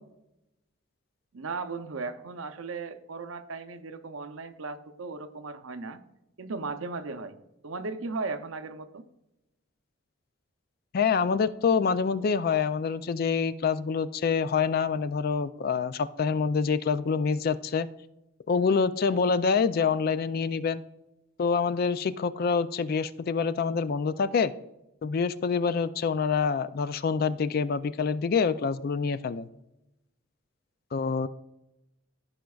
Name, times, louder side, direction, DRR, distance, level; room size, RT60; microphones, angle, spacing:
voice 1, 1.3-6.0 6.4-7.4 7.6-9.0, right 4 dB, 80° right, 10 dB, 0.6 m, -36 dB
voice 2, 10.9-17.9 18.5-20.8 21.4-24.5 25.0-29.5 30.9-31.3, left 5 dB, 45° left, 14 dB, 0.3 m, -26 dB
15.0 x 5.1 x 2.3 m, 0.89 s
head